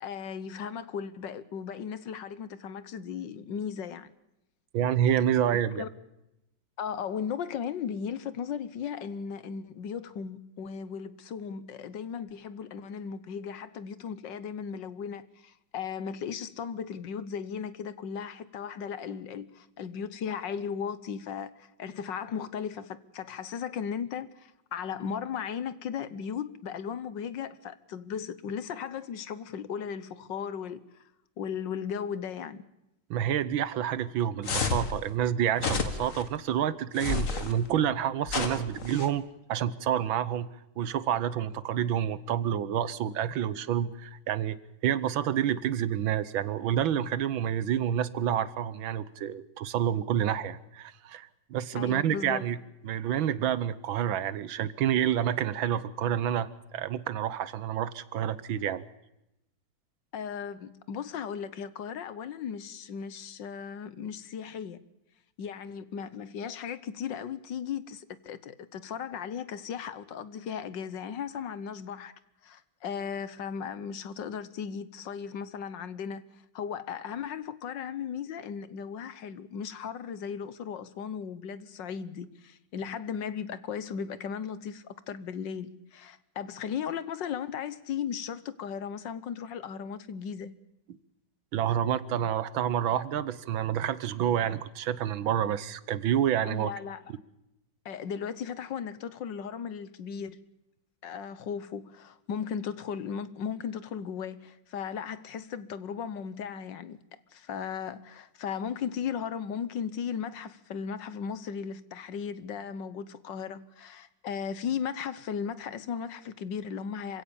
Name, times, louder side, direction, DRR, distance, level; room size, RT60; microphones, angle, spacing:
voice 1, 0.0-4.1 5.8-5.9 6.8-31.0 31.4-32.6 51.7-52.4 60.1-64.8 65.4-72.1 72.4-76.2 76.5-90.5 96.5-97.0 97.8-100.4 101.0-107.0 107.3-117.2, left 7 dB, 65° left, 1.7 m, -36 dB
voice 2, 4.7-5.8 33.1-39.2 39.5-40.5 40.8-44.6 44.8-52.6 52.8-58.8 91.5-96.7, right 10 dB, 80° right, 1.8 m, -28 dB
sound 1, 34.4-34.9 35.6-36.2 37.0-37.5 38.3-39.1, left 4 dB, 45° left, 2.0 m, -30 dB
27.0 x 16.5 x 7.1 m
omnidirectional pair, 2.1 m